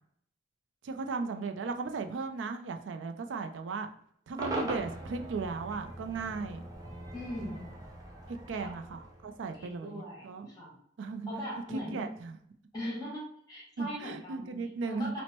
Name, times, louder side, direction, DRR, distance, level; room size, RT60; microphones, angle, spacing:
voice 1, 0.8-3.9 4.3-6.7 8.5-10.5 11.0-11.3 11.7-12.4 13.8-15.2, right 4 dB, 85° right, 7 dB, 0.4 m, -36 dB
Cheering / Crowd / Fireworks, 4.4-9.7, right 2 dB, 20° right, 0.6 m, -41 dB
voice 2, 7.1-7.7 8.5-8.8 9.5-10.7 11.3-12.0 12.7-15.2, equal, 20° left, -4 dB, 1.3 m, -40 dB
4.3 x 2.0 x 2.9 m, 0.67 s
head